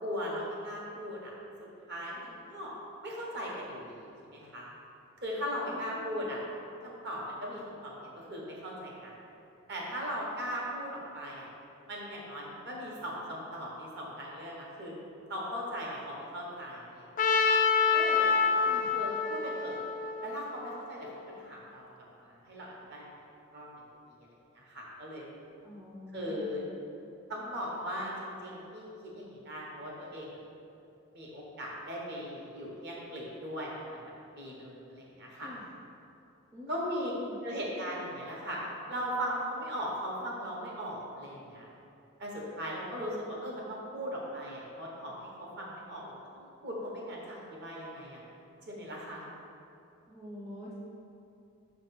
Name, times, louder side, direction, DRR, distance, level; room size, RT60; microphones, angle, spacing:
voice 1, 0.0-1.3 1.9-2.7 3.0-4.7 5.2-6.4 6.8-9.2 9.7-11.5 11.9-14.9 15.3-17.1 17.3-17.4 17.9-19.8 20.2-21.1 21.4-21.9 22.2-23.0 23.5-23.7 24.5-25.3 26.1-26.6 27.3-28.9 29.1-30.3 31.1-34.0 34.4-35.5 36.7-37.1 37.4-38.6 38.9-41.7 42.2-48.2 48.7-49.2, equal, 50° right, -3 dB, 1.2 m, -38 dB
voice 2, 5.6-6.3 18.6-18.9 25.6-26.7 35.3-35.8 36.5-37.4 50.1-50.7, left 1 dB, 15° right, -6 dB, 0.6 m, -46 dB
Trumpet, 17.2-21.2, left 5 dB, 35° left, 0.3 m, -27 dB
6.0 x 3.3 x 5.8 m, 2.7 s
head